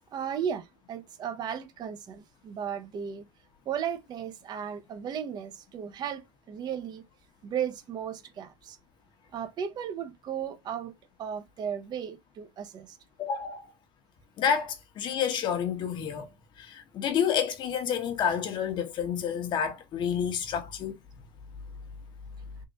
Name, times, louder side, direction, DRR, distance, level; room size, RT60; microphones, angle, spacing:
voice 1, 0.1-3.2 3.7-7.0 7.4-8.8 9.3-10.9 11.2-13.0, right 8 dB, 40° right, 0.7 m, -35 dB
voice 2, 13.2-13.7 14.4-16.3 16.6-21.0, left 8 dB, 45° left, 1.1 m, -29 dB
3.7 x 2.6 x 4.0 m
cardioid pair, 130°, 11 cm